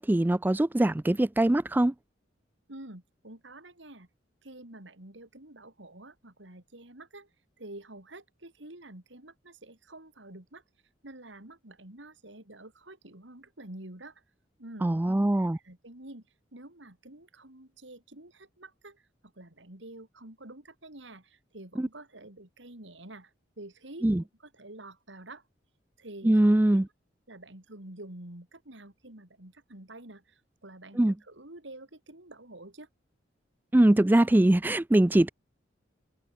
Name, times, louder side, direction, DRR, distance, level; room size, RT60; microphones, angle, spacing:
voice 1, 0.0-1.9 14.8-15.6 21.8-21.9 24.0-24.2 26.2-26.8 31.0-31.1 33.7-35.3, right 1 dB, 10° right, 0.3 m, -22 dB
voice 2, 2.7-4.1 4.4-7.3 7.6-10.6 11.0-14.2 14.6-16.2 16.5-19.1 19.4-24.1 24.4-25.4 26.0-26.8 27.3-32.9, right 1 dB, 80° right, 4.0 m, -48 dB
head